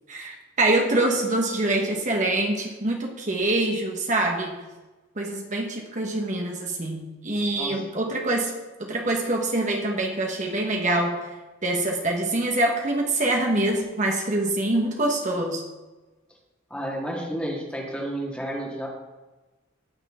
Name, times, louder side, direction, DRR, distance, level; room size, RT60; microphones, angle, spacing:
voice 1, 0.1-4.6 5.2-8.5 8.8-11.3 11.6-15.6, right 2 dB, 40° right, 0 dB, 1.3 m, -25 dB
voice 2, 7.5-7.9 16.7-18.9, right 1 dB, 5° left, -2 dB, 2.0 m, -31 dB
18.0 x 6.6 x 3.7 m, 1.2 s
head